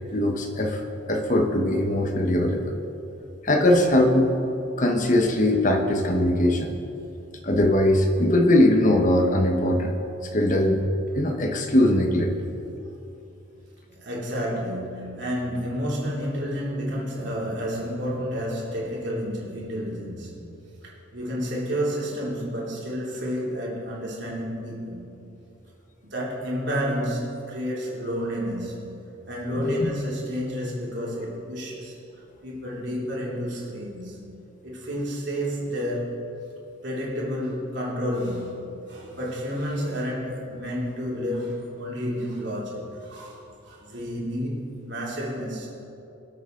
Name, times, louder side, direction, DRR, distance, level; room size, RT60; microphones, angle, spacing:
voice 1, 0.1-0.8 1.1-2.8 3.4-4.3 4.8-6.7 7.4-10.0 10.3-10.8 11.2-12.3 29.6-29.9, left 1 dB, 40° left, 3 dB, 1.2 m, -21 dB
voice 2, 13.9-20.4 20.8-25.1 26.0-28.9 29.3-32.0 32.4-34.2 34.6-36.2 36.8-45.9, equal, 55° right, -5 dB, 3.1 m, -30 dB
23.5 x 8.0 x 3.9 m, 2.8 s
head